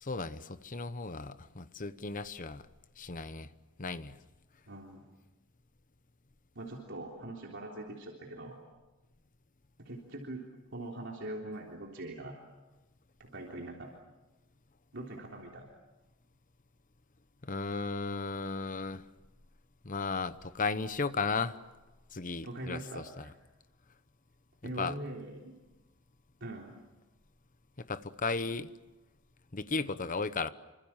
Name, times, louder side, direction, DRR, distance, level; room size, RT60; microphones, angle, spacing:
voice 1, 0.0-2.6 3.0-3.5 3.8-4.2 17.4-19.0 19.8-21.6 22.1-23.2 24.8-24.9 27.9-28.7 29.5-30.5, left 4 dB, 40° left, 13 dB, 1.0 m, -35 dB
voice 2, 4.7-5.1 6.6-8.6 9.8-10.4 10.7-12.4 13.2-13.9 14.9-15.7 22.4-23.3 24.6-25.6 26.4-26.7, right 1 dB, 60° right, -1 dB, 3.6 m, -42 dB
27.5 x 25.0 x 7.4 m, 1.1 s
head